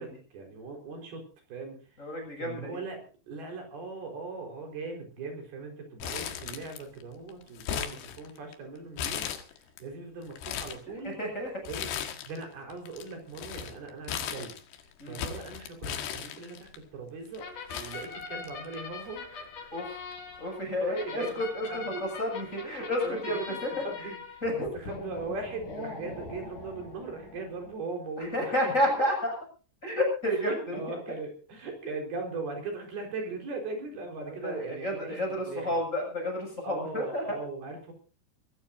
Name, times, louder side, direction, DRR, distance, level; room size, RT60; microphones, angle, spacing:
voice 1, 0.0-2.1 2.4-3.0 3.3-11.2 11.7-14.6 15.0-19.7 20.8-21.3 21.7-22.0 23.0-28.8 30.4-35.8 36.6-37.9, right 3 dB, 65° right, 3 dB, 6.5 m, -39 dB
voice 2, 2.0-2.8 11.0-11.6 15.0-15.2 19.7-19.9 20.4-23.7 24.4-24.7 28.2-29.3 29.8-30.8 34.2-37.4, left 1 dB, 15° left, 1 dB, 7.5 m, -31 dB
Crumpling crinkling, 6.0-7.0 7.3-8.5 9.0-9.8 10.2-10.8 11.7-12.4 12.7-16.8 17.4-17.5 17.7-18.8 19.1-19.2 20.1-20.4, left 9 dB, 85° left, 3.9 m, -36 dB
sound 1, 17.4-27.7, left 4 dB, 50° left, 5.3 m, -43 dB
24.5 x 17.0 x 2.7 m, 0.37 s
omnidirectional pair, 4.8 m